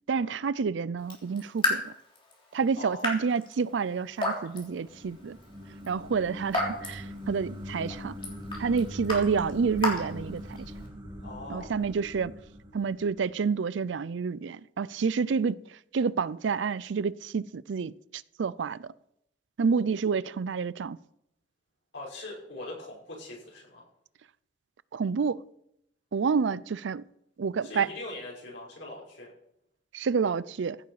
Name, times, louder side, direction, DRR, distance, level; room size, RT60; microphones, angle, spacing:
voice 1, 0.1-1.9 2.5-5.4 5.9-8.2 8.6-10.6 11.5-12.3 12.7-15.6 15.9-18.9 19.6-21.0 24.9-25.4 26.1-27.0 27.4-27.9 29.9-30.8, right 5 dB, 75° right, 0.4 m, -29 dB
Raindrop / Drip, 1.0-10.9, left 2 dB, 30° left, 3.5 m, -35 dB
voice 2, 2.8-3.1 11.2-11.7 21.9-23.9 27.6-29.3, left 2 dB, 90° left, 5.7 m, -41 dB
sound 1, 4.3-13.5, left 1 dB, 25° right, 1.7 m, -42 dB
15.5 x 9.3 x 4.9 m
head